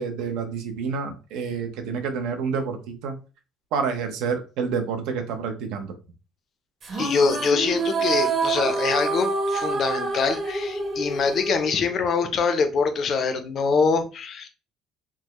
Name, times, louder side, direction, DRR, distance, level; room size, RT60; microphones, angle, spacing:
voice 1, 0.0-3.1 3.7-5.9, right 5 dB, 80° right, 0.7 m, -28 dB
sound 1, 6.8-12.3, right 3 dB, 30° right, 0.8 m, -27 dB
voice 2, 6.9-14.5, left 5 dB, 40° left, 0.5 m, -24 dB
3.4 x 2.0 x 3.0 m
cardioid pair, 160°, 0 cm